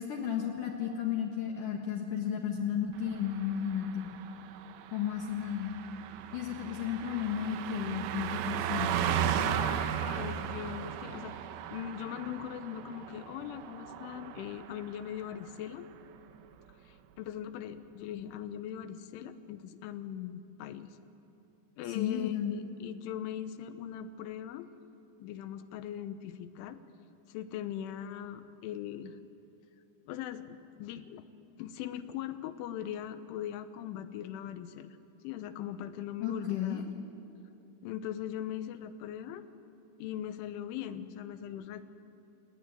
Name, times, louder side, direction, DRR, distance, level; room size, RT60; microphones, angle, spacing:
voice 1, 0.0-4.1 4.9-5.7 6.3-9.0 21.9-22.5 36.2-36.8, left 9 dB, 55° left, 1 dB, 2.6 m, -33 dB
Car passing by, 3.0-15.0 15.3-15.5, right 9 dB, 90° right, 3.6 m, -36 dB
voice 2, 9.3-11.4 11.7-15.9 16.9-20.9 21.8-24.7 25.2-26.8 27.3-29.2 30.1-31.3 31.6-35.0 35.2-36.8 37.8-39.5 40.0-41.8, left 10 dB, 85° left, 11 dB, 3.4 m, -40 dB
29.5 x 19.5 x 9.2 m, 2.8 s
omnidirectional pair, 5.5 m